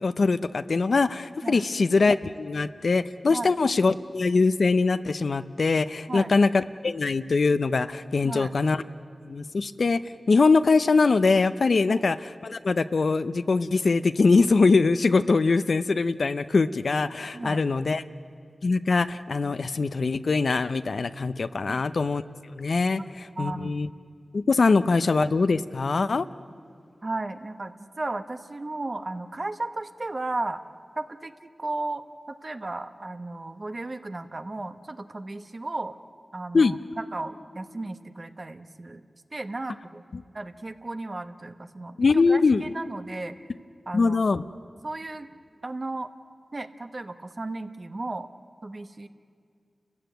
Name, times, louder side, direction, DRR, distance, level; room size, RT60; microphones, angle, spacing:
voice 1, 0.0-8.8 9.2-10.0 10.3-18.0 18.6-22.2 22.6-23.9 24.3-26.3 36.5-36.8 40.1-40.2 42.0-42.6 43.9-44.4, left 4 dB, 75° left, 13 dB, 0.6 m, -22 dB
voice 2, 8.2-8.6 11.9-12.0 17.3-17.6 21.7-21.8 23.0-23.1 23.4-23.7 27.0-30.6 31.0-36.0 36.3-39.0 39.3-40.0 40.3-43.3 43.9-44.2 44.8-45.3 45.6-46.1 46.5-48.3 48.6-49.1, right 2 dB, 45° right, 9 dB, 1.1 m, -35 dB
30.0 x 14.5 x 9.2 m, 2.2 s
cardioid pair, 50°, 0 cm